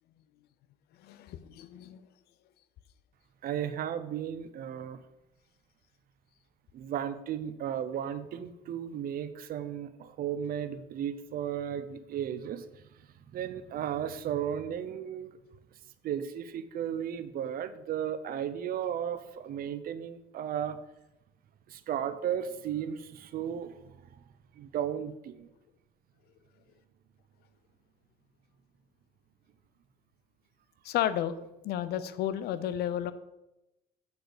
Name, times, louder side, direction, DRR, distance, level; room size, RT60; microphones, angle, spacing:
voice 1, 1.0-2.0 15.4-15.5 30.8-31.4 31.6-33.1, left 11 dB, 70° left, 14 dB, 0.6 m, -32 dB
voice 2, 3.4-5.0 6.7-15.4 16.0-20.8 21.7-24.2 24.5-25.5, right 9 dB, 60° right, 12 dB, 0.7 m, -35 dB
8.1 x 4.4 x 5.1 m, 0.93 s
cardioid pair, 110°, 17 cm